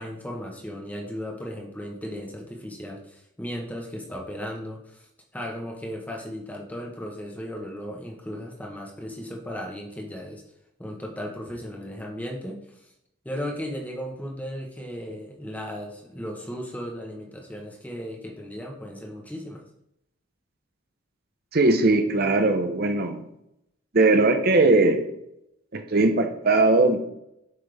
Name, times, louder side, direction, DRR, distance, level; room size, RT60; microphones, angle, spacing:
voice 1, 0.0-5.1 5.3-10.4 10.8-12.8 13.2-19.6, equal, 10° left, 0 dB, 1.0 m, -36 dB
voice 2, 21.5-23.2 23.9-25.1 25.7-27.0, right 2 dB, 45° right, 6 dB, 0.7 m, -20 dB
7.7 x 5.4 x 3.4 m, 0.79 s
head